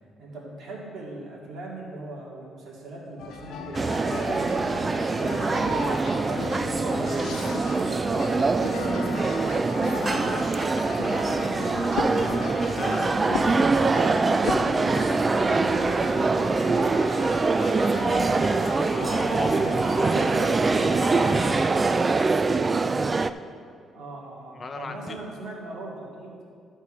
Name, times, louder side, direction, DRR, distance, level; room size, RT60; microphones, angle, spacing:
voice 1, 0.2-7.5 19.3-20.0 23.9-26.3, right 2 dB, 70° right, -3 dB, 2.2 m, -40 dB
sound 1, 3.2-21.8, left 4 dB, 85° left, 0.8 m, -35 dB
sound 2, 3.7-23.3, right 3 dB, 30° right, 0.3 m, -24 dB
voice 2, 10.0-13.4 14.7-16.4 16.7-17.7 18.8-21.9 24.5-25.2, left 3 dB, 35° left, 6 dB, 0.7 m, -40 dB
sound 3, 13.5-24.9, right 2 dB, 90° right, 1.0 m, -46 dB
13.0 x 4.4 x 5.0 m, 2.2 s
cardioid pair, 90°, 0 cm